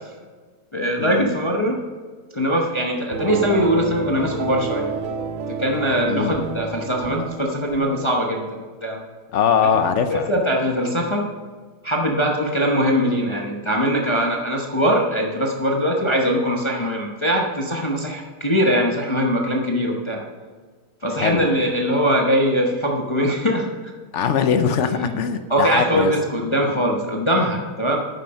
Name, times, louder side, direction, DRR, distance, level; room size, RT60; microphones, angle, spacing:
voice 1, 0.7-1.8 2.3-4.9 5.6-9.0 10.1-11.3 11.8-20.2 21.0-23.7 24.9-25.2 25.5-28.0, equal, 25° left, -1 dB, 0.7 m, -21 dB
sound 1, 3.1-8.1, right 5 dB, 60° right, 0.8 m, -30 dB
voice 2, 9.3-10.3 21.2-21.4 24.1-26.1, left 7 dB, 60° left, 9 dB, 0.9 m, -21 dB
9.2 x 7.3 x 5.3 m, 1.5 s
omnidirectional pair, 1.7 m